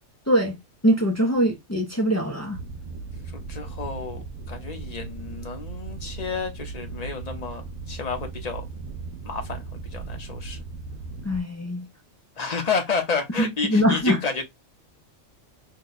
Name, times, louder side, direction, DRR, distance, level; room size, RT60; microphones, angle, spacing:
voice 1, 0.3-0.6 0.8-2.6 11.2-11.9 13.4-14.2, equal, 25° left, 0.4 m, -22 dB
sound 1, 2.5-11.4, right 4 dB, 80° right, 1.0 m, -37 dB
voice 2, 3.3-8.6 9.2-10.6 12.4-14.4, left 4 dB, 40° left, 0.7 m, -30 dB
2.8 x 2.2 x 3.9 m
omnidirectional pair, 1.3 m